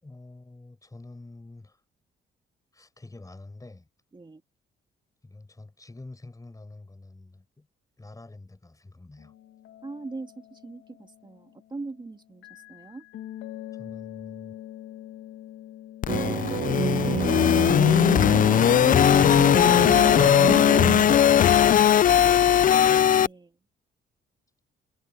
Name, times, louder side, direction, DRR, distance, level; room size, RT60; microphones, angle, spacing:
voice 1, 0.0-1.8 2.7-3.9 5.2-7.7 8.0-9.3 13.7-14.6, left 2 dB, 15° left, 4.9 m, -45 dB
sound 1, 9.2-11.9 12.4-18.7, left 13 dB, 85° left, 1.9 m, -44 dB
voice 2, 9.8-13.0 23.1-23.6, right 3 dB, 25° right, 2.9 m, -41 dB
sound 2, 16.0-23.3, left 9 dB, 45° left, 0.4 m, -19 dB
sound 3, 16.1-21.2, right 8 dB, 45° right, 1.1 m, -29 dB
cardioid pair, 90°, 20 cm